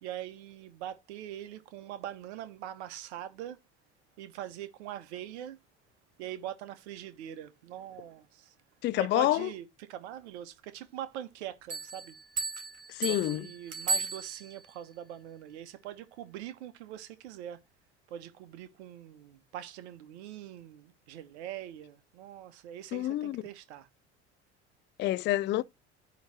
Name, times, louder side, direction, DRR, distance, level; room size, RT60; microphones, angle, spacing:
voice 1, 0.0-3.6 4.2-5.6 6.2-8.5 9.0-12.1 13.0-17.6 18.1-23.9, right 11 dB, 70° right, 1.0 m, -43 dB
voice 2, 8.8-9.5 12.9-13.5 22.9-23.4 25.0-25.6, left 15 dB, 35° left, 0.4 m, -28 dB
sound 1, 11.7-14.7, right 4 dB, 45° right, 2.7 m, -35 dB
9.5 x 3.2 x 6.0 m
hypercardioid pair, 70°, 35 cm